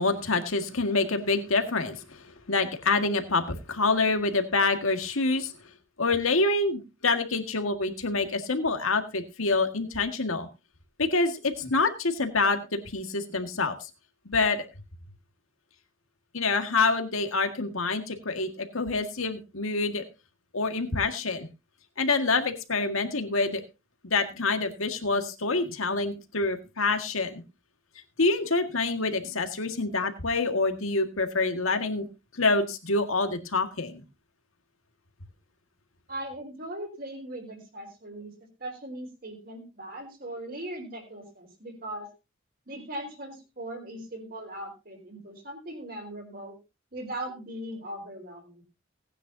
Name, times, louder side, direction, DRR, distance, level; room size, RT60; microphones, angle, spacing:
voice 1, 0.0-2.2 2.5-5.5 6.0-10.5 11.0-13.7 14.3-14.6 16.3-20.0 20.5-21.5 22.0-23.6 24.0-27.4 28.2-32.1 32.4-34.0, left 3 dB, 85° left, 6 dB, 1.9 m, -26 dB
voice 2, 36.1-38.3 38.6-42.1 42.7-46.6 46.9-48.6, right 1 dB, 45° right, 3 dB, 4.2 m, -39 dB
18.5 x 10.0 x 2.7 m, 0.27 s
head